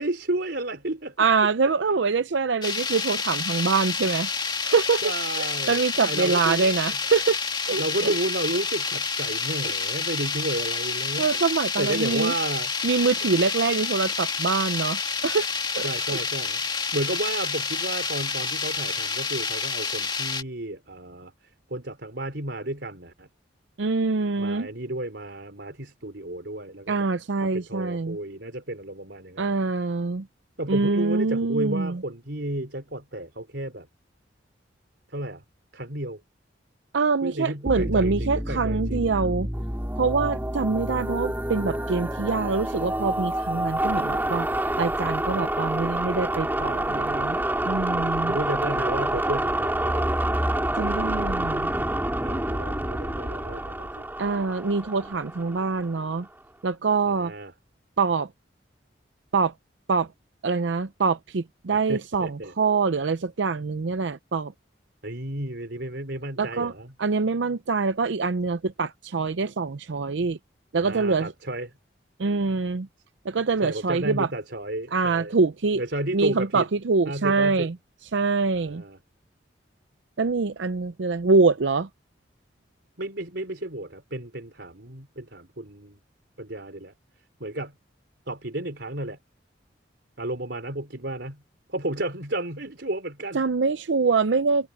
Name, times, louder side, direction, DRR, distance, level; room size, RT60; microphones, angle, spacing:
voice 1, 0.0-1.2 5.0-6.7 7.8-11.3 11.8-12.7 15.8-21.3 21.7-23.3 24.4-27.1 27.4-29.5 30.6-33.9 35.1-35.4 35.7-36.2 37.2-39.1 48.3-50.2 52.2-54.1 57.1-57.5 61.7-62.5 65.0-66.9 70.8-71.7 73.6-75.3 75.8-76.7 77.1-77.7 78.6-79.0 83.0-86.0 86.4-86.9 87.4-87.7 88.3-89.2 90.2-91.4 91.7-93.4, right 1 dB, 65° right, 4.4 m, -32 dB
voice 2, 1.2-4.3 4.6-5.0 5.4-7.4 7.7-8.1 11.2-12.3 12.8-15.5 15.7-16.2 23.8-24.7 26.9-28.2 29.4-30.3 30.7-32.0 36.9-39.5 40.0-44.5 44.8-47.4 47.6-48.4 50.8-51.7 54.2-56.3 56.6-57.3 58.0-58.3 59.3-59.5 59.9-60.1 60.4-64.5 66.4-66.7 67.0-70.4 70.7-71.3 72.2-72.9 73.2-74.3 74.9-75.8 76.1-77.7 78.1-78.8 80.2-81.9 93.3-94.7, right 4 dB, 85° right, 0.6 m, -24 dB
sound 1, 2.6-20.4, left 5 dB, 25° left, 2.1 m, -29 dB
sound 2, 37.7-56.1, right 1 dB, 10° right, 2.8 m, -28 dB
head